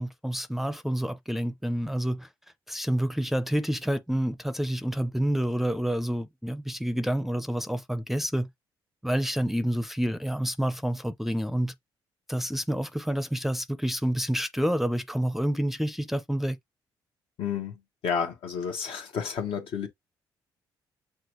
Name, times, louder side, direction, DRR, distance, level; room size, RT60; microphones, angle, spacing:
voice 1, 0.0-2.3 2.7-8.5 9.0-11.7 12.3-16.6, equal, 5° right, 0.5 m, -28 dB
voice 2, 17.4-19.9, left 7 dB, 70° left, 1.1 m, -31 dB
5.9 x 2.3 x 3.0 m
supercardioid pair, 65°, 9 cm